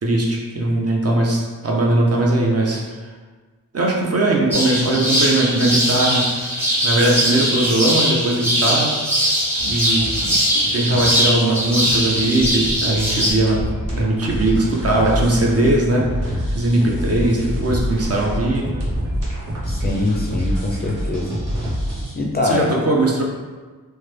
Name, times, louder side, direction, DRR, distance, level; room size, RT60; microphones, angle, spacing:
voice 1, 0.0-2.8 3.7-6.3 6.8-8.9 9.2-9.3 9.7-10.2 10.7-18.7 22.4-23.2, right 1 dB, 45° right, -1 dB, 0.6 m, -19 dB
sound 1, 4.5-13.3, equal, 5° right, 0.8 m, -20 dB
sound 2, 9.6-22.1, equal, 65° right, 1.0 m, -27 dB
voice 2, 19.7-21.3 22.1-22.7, left 2 dB, 30° left, -2 dB, 0.4 m, -23 dB
3.2 x 2.2 x 3.2 m, 1.4 s
wide cardioid pair, 100°, 35 cm